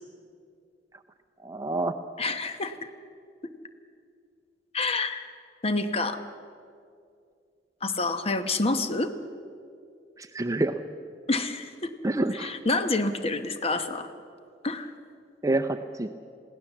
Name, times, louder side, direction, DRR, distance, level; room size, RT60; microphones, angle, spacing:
voice 1, 1.4-2.0 10.2-10.7 12.0-12.6 15.4-16.1, right 2 dB, 20° right, 6 dB, 0.5 m, -27 dB
voice 2, 2.2-2.8 4.7-5.3 5.6-6.2 7.8-9.1 11.3-11.9 12.3-14.1 14.6-14.9, left 2 dB, 35° left, 9 dB, 1.0 m, -28 dB
21.5 x 17.0 x 7.2 m, 2.3 s
head